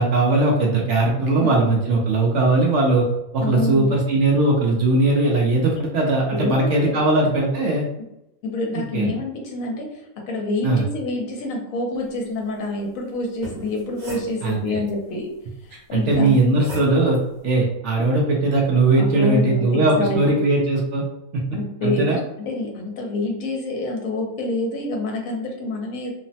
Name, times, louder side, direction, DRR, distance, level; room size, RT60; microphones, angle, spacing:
voice 1, 0.0-3.0 3.3-7.9 8.7-9.1 10.6-10.8 14.4-14.8 15.9-17.2 17.4-21.0 21.3-21.4 21.8-22.2, right 2 dB, 65° right, -1 dB, 0.8 m, -19 dB
voice 2, 1.1-1.5 3.4-3.9 6.3-7.0 8.0-8.1 8.4-15.3 15.6-16.4 19.0-19.6 20.0-20.4 21.5-22.0 22.4-26.1, left 2 dB, 70° left, 1 dB, 1.0 m, -27 dB
sound 1, 13.2-14.9 16.1-17.2, equal, 40° right, 0.9 m, -37 dB
3.0 x 2.1 x 2.7 m, 0.85 s
omnidirectional pair, 1.5 m